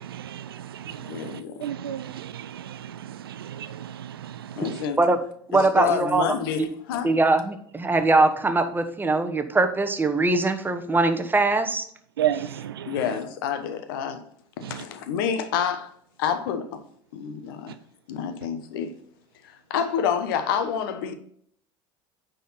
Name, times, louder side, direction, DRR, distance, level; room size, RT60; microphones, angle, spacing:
voice 1, 0.0-4.8 12.2-13.0 14.6-14.8, right 11 dB, 90° right, 0.4 m, -33 dB
voice 2, 1.1-1.6 4.6-5.0 5.5-7.1 12.9-14.2 14.7-15.9 16.2-16.8 17.1-17.8 18.1-19.0 19.4-21.2, left 7 dB, 75° left, 1.0 m, -28 dB
voice 3, 5.5-6.7 7.0-11.8, right 3 dB, 15° right, 1.0 m, -22 dB
9.2 x 4.1 x 4.2 m
hypercardioid pair, 80°, 12 cm